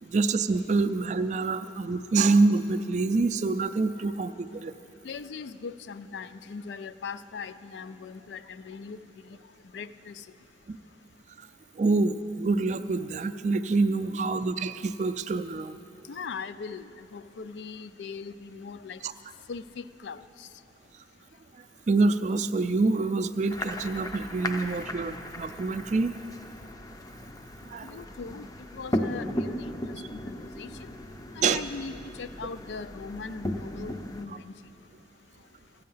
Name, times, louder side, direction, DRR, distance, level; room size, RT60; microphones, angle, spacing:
voice 1, 0.0-4.7 10.7-10.8 11.4-11.5 11.7-15.8 19.0-19.1 21.9-26.1 27.6-28.0 31.4-31.6, right 3 dB, 40° right, 10 dB, 0.3 m, -26 dB
voice 2, 5.0-9.0 9.3-9.4 9.7-10.2 16.1-19.0 19.5-20.5 27.8-28.5 28.7-30.9 31.4-34.5, left 5 dB, 75° left, 14 dB, 0.4 m, -40 dB
sound 1, 23.5-34.2, left 1 dB, 20° left, 0.5 m, -36 dB
15.0 x 8.5 x 5.6 m, 2.7 s
head